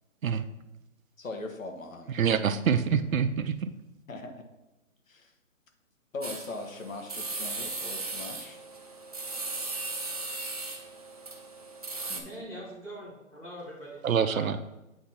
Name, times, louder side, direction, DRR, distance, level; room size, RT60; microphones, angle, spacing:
voice 1, 1.2-2.2 4.1-4.4 5.1-5.3 6.1-8.6 12.1-12.3, left 2 dB, 70° left, 5 dB, 1.4 m, -40 dB
voice 2, 2.1-3.7 14.0-14.6, right 7 dB, 75° right, 11 dB, 0.7 m, -26 dB
sound 1, 6.2-12.2, right 3 dB, 30° right, 0.6 m, -37 dB
voice 3, 12.2-14.6, equal, 5° left, -9 dB, 1.1 m, -43 dB
8.5 x 2.9 x 5.7 m, 0.98 s
hypercardioid pair, 175°, 41 cm